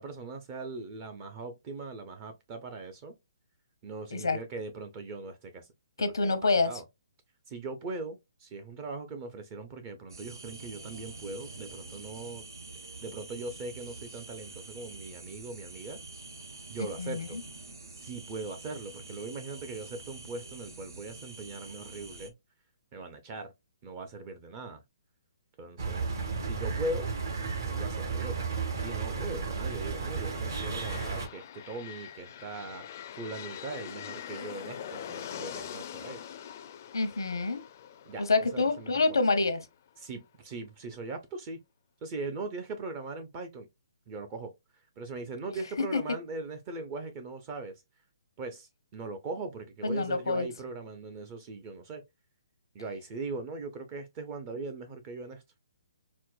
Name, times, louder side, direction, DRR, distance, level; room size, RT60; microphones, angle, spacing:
voice 1, 0.0-3.2 3.8-5.7 6.0-6.4 6.7-6.8 7.5-12.4 13.0-16.0 16.7-17.4 17.9-22.3 22.9-23.5 23.8-24.8 25.6-26.1 26.4-27.1 27.7-28.4 28.7-32.9 33.2-36.2 38.1-38.9 40.0-41.6 42.0-43.7 44.1-44.5 45.0-47.8 48.4-52.0 52.7-55.4, right 3 dB, 25° right, 0.5 m, -40 dB
voice 2, 6.0-6.7 16.8-17.4 36.9-37.6 38.2-39.7 45.9-46.0 49.8-50.5, left 3 dB, 90° left, 0.8 m, -27 dB
sound 1, 10.1-22.3, right 3 dB, 85° right, 0.9 m, -46 dB
sound 2, 25.8-31.3, right 5 dB, 60° right, 1.1 m, -33 dB
sound 3, 30.2-40.0, left 9 dB, 40° left, 0.4 m, -44 dB
4.3 x 2.0 x 2.3 m
hypercardioid pair, 155°, 2 cm